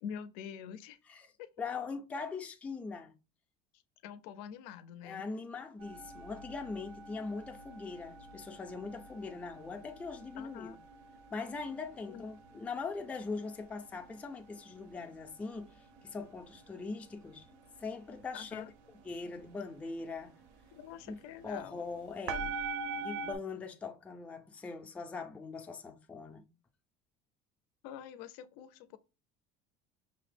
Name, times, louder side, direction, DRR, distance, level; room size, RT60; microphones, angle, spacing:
voice 1, 0.0-1.0 1.4-1.5 4.0-5.2 10.4-10.8 12.1-12.2 18.3-18.7 20.7-21.8 27.8-29.0, left 8 dB, 85° left, 0.4 m, -46 dB
voice 2, 1.6-3.1 5.0-10.8 11.3-15.7 16.0-17.5 17.8-18.6 19.0-20.3 21.1-21.2 21.4-22.6 22.9-26.4, left 4 dB, 5° left, 0.3 m, -41 dB
sound 1, 5.8-23.3, right 4 dB, 70° right, 0.5 m, -46 dB
5.6 x 2.0 x 3.2 m
cardioid pair, 145°, 20 cm